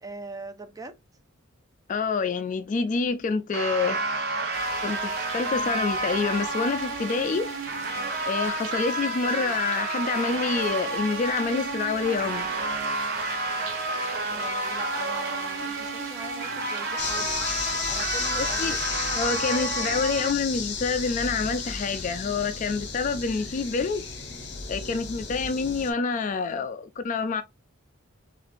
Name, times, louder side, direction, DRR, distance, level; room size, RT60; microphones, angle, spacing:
voice 1, 0.0-1.0 7.9-8.2 13.9-18.8, right 2 dB, 15° right, 0.5 m, -42 dB
voice 2, 1.9-4.0 4.8-7.5 8.3-12.5 18.4-18.8 19.1-24.1 24.7-27.4, left 4 dB, 35° left, 0.3 m, -27 dB
sound 1, 3.5-20.3, right 2 dB, 50° right, 0.8 m, -30 dB
sound 2, 4.5-18.9, right 4 dB, 70° right, 1.3 m, -42 dB
sound 3, 17.0-25.9, left 5 dB, 55° left, 0.9 m, -33 dB
6.3 x 2.5 x 2.5 m
head